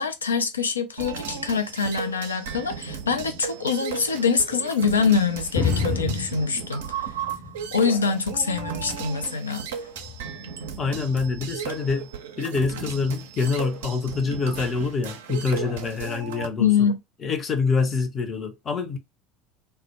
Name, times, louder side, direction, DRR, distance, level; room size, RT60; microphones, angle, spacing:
voice 1, 0.0-7.1 7.7-9.7 16.6-17.0, left 5 dB, 85° left, 0.4 m, -24 dB
sound 1, 1.0-16.5, right 7 dB, 70° right, 0.4 m, -35 dB
sound 2, 5.5-7.8 8.1-9.1 9.9-10.3 11.3-11.5, left 5 dB, 65° left, 1.0 m, -30 dB
voice 2, 10.8-12.1 12.4-16.9 17.2-19.0, left 4 dB, 35° left, 0.6 m, -26 dB
2.2 x 2.0 x 2.8 m
figure-of-eight pair, 70°, 0 cm